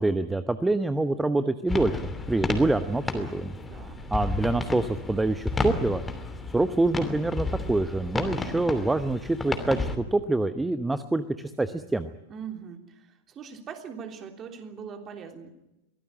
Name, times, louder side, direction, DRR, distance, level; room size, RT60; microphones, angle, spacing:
voice 1, 0.0-3.5 4.1-6.0 6.5-12.1, right 2 dB, 10° right, 12 dB, 0.9 m, -26 dB
sound 1, 1.7-10.0, left 3 dB, 10° left, 2.8 m, -32 dB
voice 2, 3.7-4.0 12.3-15.5, right 7 dB, 25° right, 5 dB, 3.3 m, -41 dB
23.5 x 17.0 x 10.0 m, 0.92 s
figure-of-eight pair, 90°, 0 cm